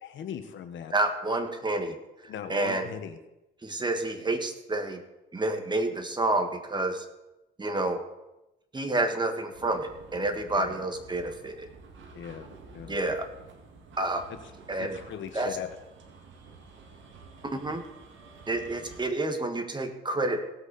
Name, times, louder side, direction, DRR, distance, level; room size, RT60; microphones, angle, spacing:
voice 1, 0.0-0.9 2.3-3.2 10.5-10.8 12.1-12.5 12.7-13.0 14.3-14.4 14.8-15.7, left 8 dB, 70° left, 8 dB, 1.2 m, -39 dB
voice 2, 0.9-2.0 2.5-2.9 3.6-5.0 5.3-7.0 7.6-8.0 8.7-11.7 12.9-13.3 14.0-14.2 14.7-14.9 15.3-15.5 17.5-17.8 18.5-20.4, right 2 dB, 20° right, 6 dB, 1.6 m, -29 dB
sound 1, 9.5-19.0, right 4 dB, 75° right, 1.9 m, -50 dB
18.0 x 8.0 x 4.1 m, 0.95 s
cardioid pair, 90°, 20 cm